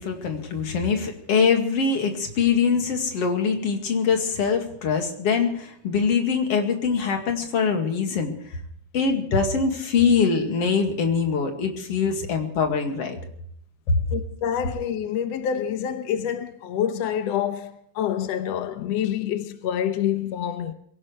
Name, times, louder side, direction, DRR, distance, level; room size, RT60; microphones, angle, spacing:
voice 1, 0.0-8.6 8.9-13.2 13.9-14.0, left 5 dB, 45° left, 2.8 m, -23 dB
voice 2, 14.1-20.7, left 9 dB, 80° left, 1.5 m, -27 dB
23.0 x 18.0 x 3.3 m
omnidirectional pair, 4.3 m